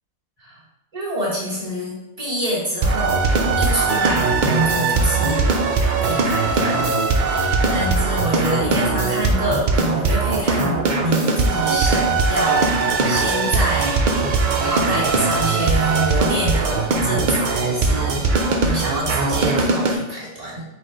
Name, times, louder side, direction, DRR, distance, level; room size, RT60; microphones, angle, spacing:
voice 1, 0.9-3.2 3.6-7.0 7.3-14.0 14.4-20.6, right 1 dB, 30° right, -7 dB, 1.3 m, -26 dB
sound 1, 2.8-20.0, right 3 dB, 70° right, 0.4 m, -20 dB
4.3 x 2.5 x 4.5 m, 0.92 s
omnidirectional pair, 1.4 m